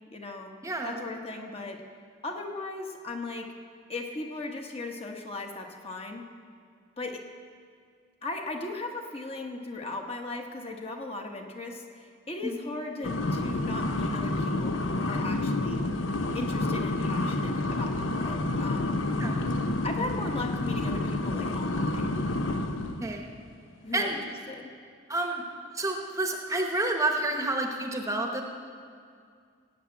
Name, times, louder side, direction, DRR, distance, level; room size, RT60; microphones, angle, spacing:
voice 1, 0.1-0.5 0.8-1.8 2.2-3.5 3.9-6.2 7.0-7.2 8.2-15.9 16.3-19.0 19.8-22.9 23.8-24.2 24.5-24.7, left 2 dB, 30° left, 2 dB, 1.1 m, -37 dB
voice 2, 0.6-1.0 12.4-12.6 19.2-19.4 23.0-23.3 23.9-24.2 25.1-25.4 25.7-28.4, right 2 dB, 15° right, 3 dB, 0.9 m, -29 dB
sound 1, 13.0-23.1, left 2 dB, 80° left, 0.8 m, -29 dB
17.5 x 7.3 x 8.5 m, 2.2 s
head